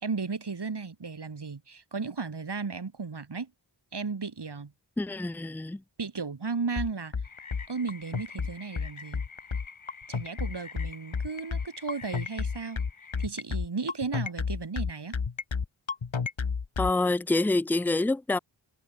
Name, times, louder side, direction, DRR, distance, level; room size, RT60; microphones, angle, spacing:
voice 1, 0.0-3.5 3.9-4.7 6.0-7.1 7.7-9.2 10.1-12.8 13.2-15.2, right 4 dB, 60° right, 3.0 m, -34 dB
voice 2, 5.0-5.8 16.8-18.4, left 2 dB, 5° left, 0.5 m, -26 dB
sound 1, 6.8-16.9, left 5 dB, 70° left, 2.8 m, -31 dB
sound 2, 7.2-13.3, left 5 dB, 85° left, 4.5 m, -48 dB
wide cardioid pair, 80°, 47 cm